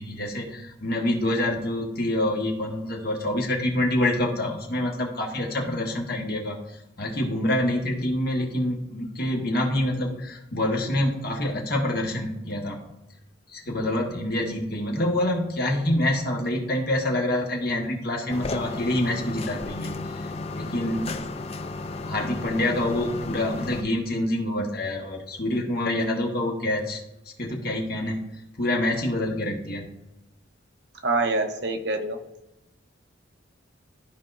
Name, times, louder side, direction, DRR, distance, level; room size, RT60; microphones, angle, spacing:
voice 1, 0.0-6.6 7.0-12.8 13.5-19.9 20.6-21.1 22.1-27.0 27.4-28.2 28.6-29.9, left 1 dB, 50° left, 0 dB, 1.4 m, -26 dB
sound 1, 18.3-23.8, left 3 dB, 30° left, 0.4 m, -33 dB
voice 2, 31.0-32.2, right 3 dB, 55° right, 5 dB, 0.9 m, -25 dB
13.5 x 4.7 x 2.6 m, 0.93 s
head